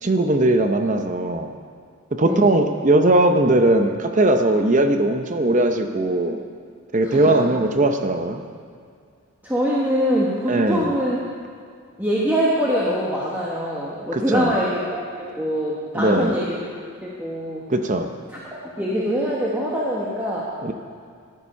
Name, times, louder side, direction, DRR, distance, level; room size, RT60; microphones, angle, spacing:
voice 1, 0.0-1.6 2.1-6.4 6.9-8.4 10.5-11.0 14.1-14.6 15.9-16.3 17.7-18.1 20.6-20.7, right 1 dB, 35° right, 6 dB, 0.7 m, -19 dB
voice 2, 7.0-7.5 9.4-11.2 12.0-16.7 17.0-17.7 18.3-18.4 18.8-20.5, equal, 10° right, -7 dB, 1.2 m, -24 dB
13.5 x 9.8 x 5.6 m, 2.2 s
head